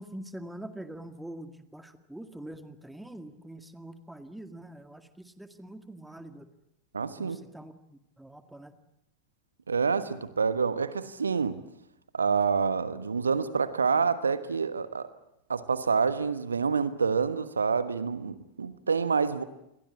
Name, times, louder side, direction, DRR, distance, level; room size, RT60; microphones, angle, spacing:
voice 1, 0.0-6.5 7.2-8.7, right 1 dB, 5° right, 2.0 m, -44 dB
voice 2, 6.9-7.4 9.7-11.6 12.1-15.1 15.5-19.4, right 5 dB, 75° right, 1.2 m, -27 dB
28.5 x 22.5 x 8.6 m
figure-of-eight pair, 90°, 0 cm